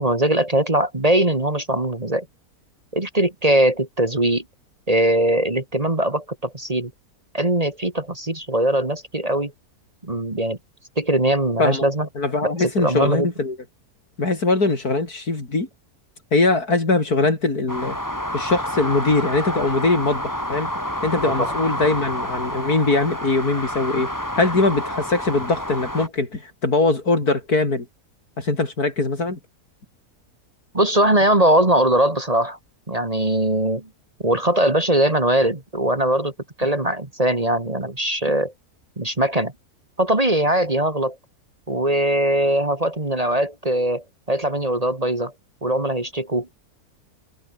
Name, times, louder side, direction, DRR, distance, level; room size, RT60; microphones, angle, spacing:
voice 1, 0.0-2.3 2.9-4.4 4.9-6.9 7.3-9.5 10.0-10.6 11.0-12.1 12.6-13.3 21.2-21.5 30.7-32.6 32.9-33.9 34.2-36.3 36.6-38.5 39.0-39.5 40.0-41.2 41.7-45.3 45.6-46.6, right 1 dB, 25° right, 2.1 m, -21 dB
voice 2, 11.6-13.6 14.2-15.7 16.3-18.0 18.3-20.7 21.0-27.9 28.4-29.4, left 3 dB, 75° left, 5.0 m, -21 dB
sound 1, 17.7-26.1, equal, 10° left, 5.9 m, -29 dB
omnidirectional pair, 1.6 m